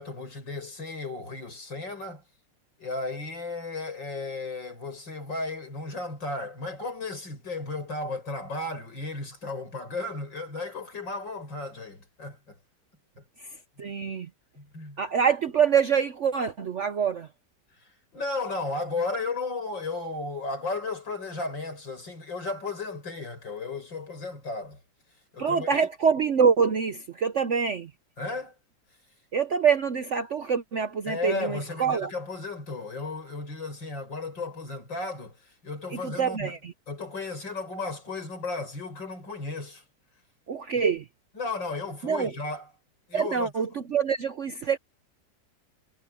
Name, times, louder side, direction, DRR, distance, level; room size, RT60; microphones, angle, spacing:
voice 1, 0.0-2.2 2.8-12.6 13.2-13.3 14.6-15.0 18.1-24.8 25.3-25.9 28.2-28.5 31.1-36.5 36.9-39.8 41.4-42.7 43.1-43.5, left 3 dB, 75° left, 7.3 m, -34 dB
voice 2, 13.8-14.3 15.0-17.3 25.4-27.9 29.3-32.1 35.9-36.7 40.5-41.0 42.0-42.3 43.1-44.8, right 6 dB, 55° right, 0.8 m, -25 dB
omnidirectional pair, 2.0 m